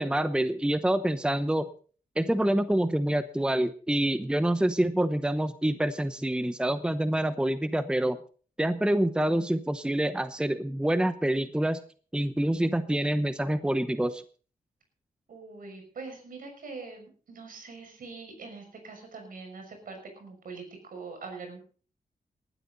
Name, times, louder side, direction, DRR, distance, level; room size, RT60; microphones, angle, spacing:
voice 1, 0.0-1.7 2.2-8.2 8.6-11.8 12.1-14.2, right 1 dB, 5° right, 12 dB, 0.9 m, -26 dB
voice 2, 15.3-21.6, right 4 dB, 70° right, 4 dB, 6.4 m, -43 dB
19.5 x 12.5 x 4.0 m, 0.40 s
wide cardioid pair, 105°, 15 cm